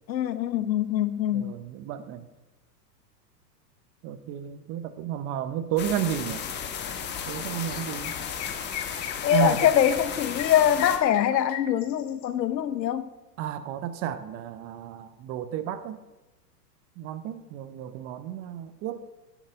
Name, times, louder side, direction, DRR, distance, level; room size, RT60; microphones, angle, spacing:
voice 1, 0.1-1.6 9.2-13.1, left 10 dB, 80° left, 1.0 m, -23 dB
voice 2, 1.3-2.2 4.0-6.4 7.3-8.1 9.3-9.7 13.4-16.0 17.0-19.0, right 10 dB, 30° right, 0.7 m, -32 dB
sound 1, 5.8-11.0, left 7 dB, 20° left, 1.1 m, -34 dB
Chirp tweet, 7.3-7.4 7.7-12.3, left 10 dB, 50° left, 1.4 m, -38 dB
10.0 x 6.6 x 6.9 m
hypercardioid pair, 125°, 49 cm